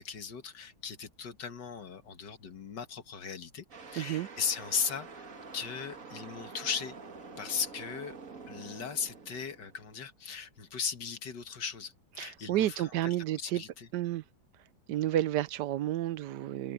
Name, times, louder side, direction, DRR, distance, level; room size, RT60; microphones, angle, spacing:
voice 1, 0.0-5.3 5.5-7.0 7.4-8.2 8.5-13.9, left 6 dB, 70° left, 2.2 m, -37 dB
sound 1, 3.7-10.0, right 4 dB, 45° right, 2.2 m, -47 dB
voice 2, 4.0-4.3 12.2-13.6 13.9-14.2 14.9-16.7, right 13 dB, 70° right, 1.2 m, -31 dB
omnidirectional pair, 2.0 m